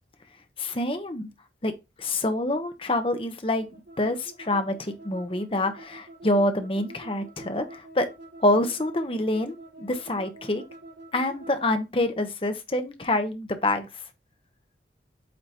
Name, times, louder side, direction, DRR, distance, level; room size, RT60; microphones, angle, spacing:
voice 1, 0.6-1.3 1.6-1.7 2.0-3.7 4.0-8.1 8.4-10.6 11.1-13.9, left 1 dB, 30° left, 0.9 m, -26 dB
sound 1, 3.5-11.8, right 1 dB, 85° right, 3.6 m, -47 dB
8.5 x 2.9 x 4.2 m
head